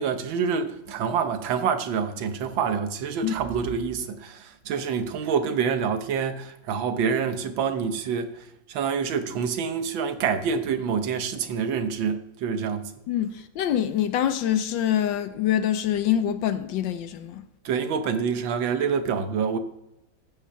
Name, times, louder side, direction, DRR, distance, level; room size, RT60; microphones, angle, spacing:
voice 1, 0.0-8.3 8.7-12.9 17.6-19.6, right 6 dB, 70° right, 1.6 m, -27 dB
voice 2, 13.1-17.4, left 10 dB, 70° left, 1.2 m, -25 dB
14.5 x 5.6 x 5.7 m
omnidirectional pair, 2.3 m